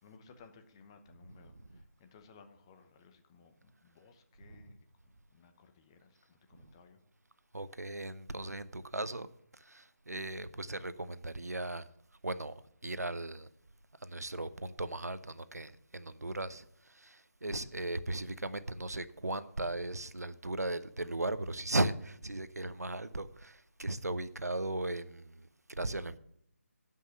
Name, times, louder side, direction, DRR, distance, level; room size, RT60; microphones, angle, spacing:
voice 1, 0.0-4.8 5.0-7.0 17.5-17.7, left 5 dB, 20° left, 0.8 m, -59 dB
voice 2, 1.3-1.8 4.4-4.8 6.5-6.7 7.5-11.9 12.2-13.5 14.0-26.2, right 2 dB, 80° right, 0.8 m, -37 dB
12.0 x 5.6 x 6.7 m
figure-of-eight pair, 155°, 9 cm